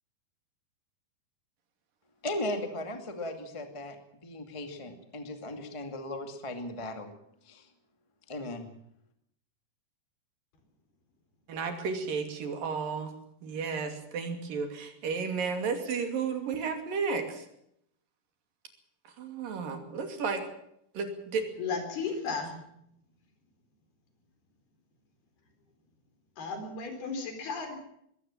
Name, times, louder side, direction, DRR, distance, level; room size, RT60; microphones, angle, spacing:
voice 1, 2.2-7.1 7.4-7.7 8.3-8.7, left 1 dB, 15° left, 6 dB, 1.3 m, -37 dB
voice 2, 11.5-13.1 13.4-17.5 19.2-20.4 20.9-21.4, right 5 dB, 65° right, 7 dB, 4.2 m, -33 dB
voice 3, 21.6-22.5 26.4-27.8, left 4 dB, 75° left, 6 dB, 6.1 m, -34 dB
22.0 x 16.5 x 7.3 m, 0.73 s
omnidirectional pair, 4.5 m